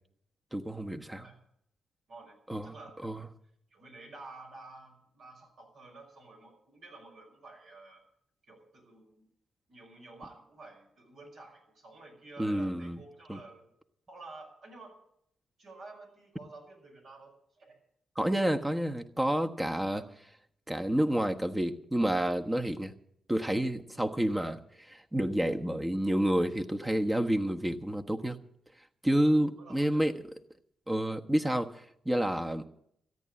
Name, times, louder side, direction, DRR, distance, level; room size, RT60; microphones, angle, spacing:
voice 1, 0.5-1.2 2.5-2.7 3.0-3.2 12.4-13.0 13.3-13.4 18.2-20.0 20.7-22.9 23.3-24.6 24.9-28.4 29.0-30.1 30.9-32.7, right 1 dB, 15° right, 5 dB, 1.2 m, -29 dB
voice 2, 2.1-3.1 3.7-8.0 8.5-9.2 9.7-13.7 14.1-15.0 15.6-17.8 19.9-20.1 29.6-30.1, right 3 dB, 65° right, 0 dB, 5.3 m, -51 dB
13.5 x 9.2 x 8.7 m, 0.73 s
hypercardioid pair, 40°, 0 cm